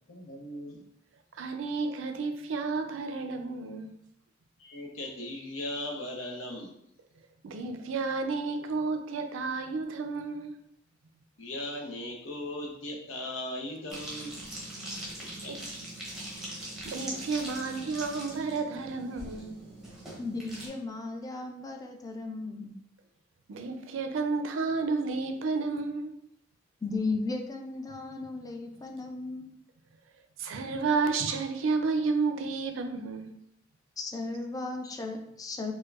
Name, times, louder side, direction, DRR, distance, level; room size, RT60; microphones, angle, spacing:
voice 1, 0.1-0.8 4.6-6.8 11.4-14.4 15.2-15.5, left 1 dB, 80° left, 0 dB, 0.8 m, -38 dB
voice 2, 1.4-3.9 7.4-10.5 15.3-15.6 16.8-19.5 23.5-26.2 30.4-33.3, right 4 dB, 75° right, 6 dB, 0.4 m, -31 dB
sound 1, 13.9-20.7, right 1 dB, 5° right, 0.8 m, -41 dB
voice 3, 20.2-22.8 26.8-29.5 34.0-35.7, left 3 dB, 20° left, 3 dB, 0.3 m, -35 dB
4.5 x 2.2 x 2.4 m, 0.75 s
head